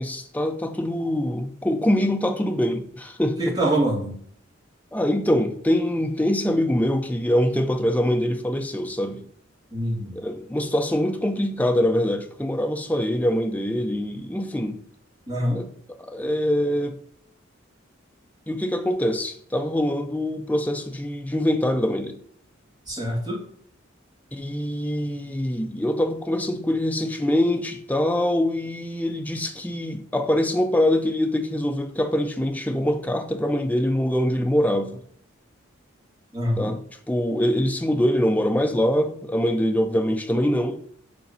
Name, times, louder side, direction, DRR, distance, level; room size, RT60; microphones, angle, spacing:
voice 1, 0.0-3.6 4.9-9.2 10.1-14.8 15.5-15.7 16.0-17.0 18.5-22.2 24.3-35.0 36.6-40.8, left 1 dB, 10° left, 0.5 m, -24 dB
voice 2, 3.4-4.1 9.7-10.1 15.3-15.6 22.9-23.4 36.3-36.7, right 1 dB, 20° right, 2.5 m, -25 dB
5.2 x 4.0 x 5.4 m
head